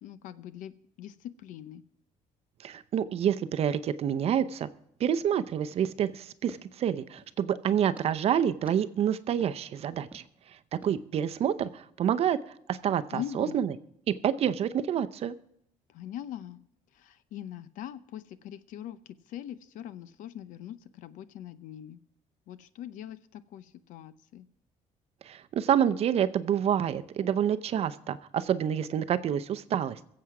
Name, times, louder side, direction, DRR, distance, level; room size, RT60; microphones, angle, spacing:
voice 1, 0.0-1.8 13.1-13.6 15.9-16.6 16.9-22.0 22.5-24.5, left 11 dB, 80° left, 14 dB, 0.7 m, -42 dB
voice 2, 2.6-4.7 5.0-10.2 10.7-13.7 14.1-15.3 25.2-30.0, right 9 dB, 50° right, 13 dB, 0.6 m, -28 dB
sound 1, 5.7-7.4 8.0-8.1 8.7-8.8 9.4-9.5 10.1-10.3 10.8-10.9, right 1 dB, 10° right, 1.4 m, -52 dB
22.0 x 7.7 x 4.8 m, 0.74 s
cardioid pair, 150°, 13 cm